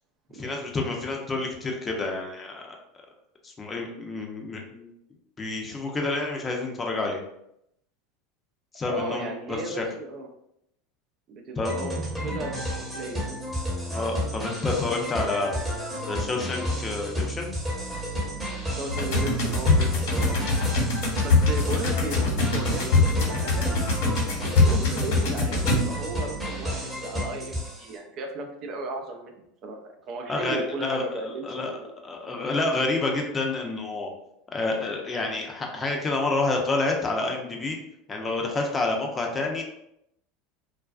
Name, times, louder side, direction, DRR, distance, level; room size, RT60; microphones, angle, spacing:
voice 1, 0.3-2.8 3.4-4.9 5.4-7.2 8.7-9.8 11.6-11.7 13.9-17.5 24.0-24.2 30.3-31.7 32.0-34.1 34.5-37.8 38.1-39.6, left 3 dB, 25° left, 1 dB, 0.5 m, -29 dB
voice 2, 8.9-10.3 11.3-13.4 18.7-20.4 21.2-23.7 24.4-31.9 32.2-32.4, right 3 dB, 50° right, 3 dB, 0.4 m, -35 dB
sound 1, 11.6-27.9, equal, 10° right, 0.9 m, -31 dB
sound 2, 18.9-26.2, left 3 dB, 75° left, 1.1 m, -24 dB
2.4 x 2.2 x 2.3 m, 0.77 s
hypercardioid pair, 95°, 0 cm